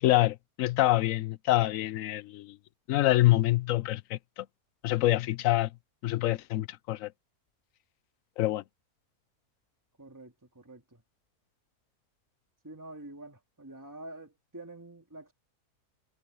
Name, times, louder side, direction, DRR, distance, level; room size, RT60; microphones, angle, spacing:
voice 1, 0.0-2.6 2.9-4.4 4.8-5.7 6.0-7.1 8.4-8.6, left 16 dB, 70° left, 0.9 m, -26 dB
voice 2, 10.0-11.0 12.6-15.3, right 2 dB, 10° right, 2.5 m, -47 dB
omnidirectional pair, 1.6 m